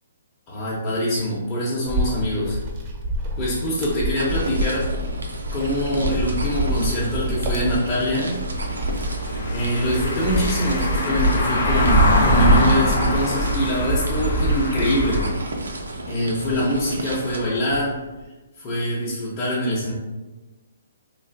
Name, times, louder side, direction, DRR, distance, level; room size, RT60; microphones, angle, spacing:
voice 1, 0.5-2.6 3.4-4.9 5.5-8.4 9.5-15.3 16.1-18.0 18.6-19.9, equal, 30° left, -9 dB, 0.7 m, -24 dB
Wind, 1.9-16.0 16.4-17.9, equal, 35° right, 0.5 m, -26 dB
sound 1, 4.2-17.4, right 2 dB, 90° right, 0.5 m, -33 dB
Car passing by / Engine, 8.6-15.3, left 1 dB, 65° left, 0.6 m, -24 dB
3.2 x 2.4 x 2.5 m, 1.2 s
hypercardioid pair, 140°, 0 cm